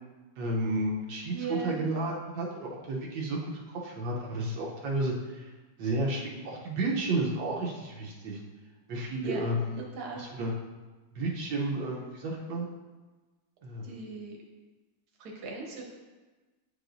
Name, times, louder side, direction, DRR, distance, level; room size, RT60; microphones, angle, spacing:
voice 1, 0.4-5.5 5.8-8.4 8.9-9.8 10.2-10.5 11.1-12.7 13.6-14.0, right 2 dB, 85° right, -2 dB, 1.5 m, -32 dB
voice 2, 1.3-1.8 9.2-9.5 9.9-10.2 13.8-14.4 15.2-15.8, right 3 dB, 60° right, -1 dB, 1.6 m, -38 dB
8.6 x 4.8 x 2.6 m, 1.2 s
omnidirectional pair, 2.0 m